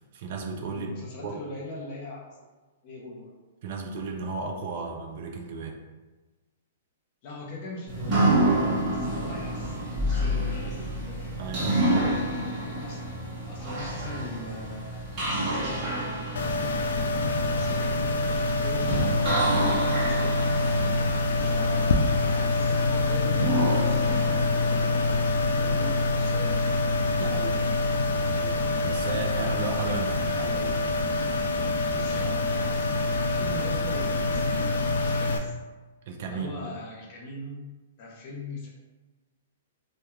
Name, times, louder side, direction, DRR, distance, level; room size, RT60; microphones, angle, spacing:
voice 1, 0.1-0.9 1.2-1.3 3.6-5.8 11.4-12.2 20.7-21.0 27.1-27.6 28.2-31.0 36.1-36.5, right 4 dB, 40° right, 2 dB, 0.3 m, -35 dB
voice 2, 0.7-2.3 2.8-3.3 7.2-12.0 12.6-13.0 13.5-17.0 17.5-20.4 21.4-26.7 31.9-35.6 36.3-37.6 38.0-38.7, left 2 dB, 30° left, -3 dB, 0.5 m, -41 dB
sound 1, 7.9-25.7, right 1 dB, 15° right, 0.8 m, -29 dB
sound 2, 16.4-35.4, left 2 dB, 85° left, 0.3 m, -25 dB
2.3 x 2.2 x 3.0 m, 1.2 s
hypercardioid pair, 180°, 0 cm